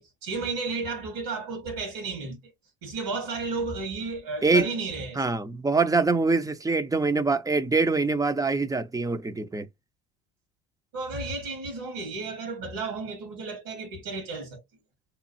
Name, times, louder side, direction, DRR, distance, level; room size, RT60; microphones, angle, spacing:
voice 1, 0.0-2.4 2.8-5.2 10.9-14.6, right 3 dB, 75° right, 1.6 m, -33 dB
voice 2, 5.2-9.7, right 3 dB, 10° right, 0.4 m, -24 dB
3.0 x 2.3 x 2.6 m
hypercardioid pair, 70°, 43 cm